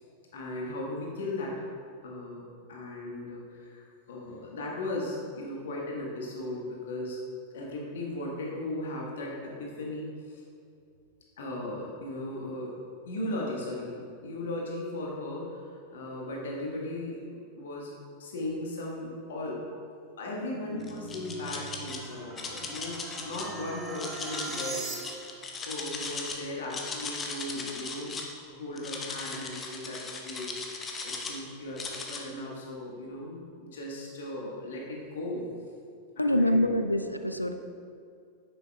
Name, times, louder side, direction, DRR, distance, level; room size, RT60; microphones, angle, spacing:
voice 1, 0.3-1.5 2.0-7.2 7.5-10.4 11.4-12.8 13.0-17.9 18.2-19.6 20.2-25.2 25.6-28.2 28.5-30.5 31.0-35.5 36.2-36.7, left 1 dB, 60° left, -2 dB, 1.4 m, -37 dB
sound 1, 20.5-25.4, right 2 dB, 10° right, 1.1 m, -41 dB
sound 2, 20.8-22.0 22.4-23.4 23.9-26.4 26.6-28.3 28.8-31.4 31.8-32.2, left 4 dB, 20° left, 0.8 m, -38 dB
voice 2, 36.2-37.5, left 1 dB, 90° left, 7 dB, 0.4 m, -25 dB
9.4 x 6.9 x 2.3 m, 2.3 s
figure-of-eight pair, 90°, 0 cm